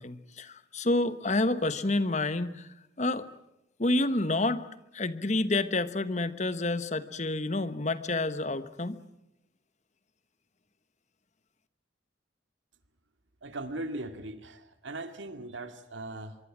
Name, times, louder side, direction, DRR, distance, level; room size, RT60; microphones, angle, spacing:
voice 1, 0.0-2.7 3.0-3.3 3.8-4.6 4.9-9.0, left 2 dB, 40° left, 13 dB, 1.2 m, -29 dB
voice 2, 13.4-16.4, right 2 dB, 85° right, 9 dB, 2.2 m, -39 dB
25.0 x 23.5 x 7.4 m, 0.87 s
head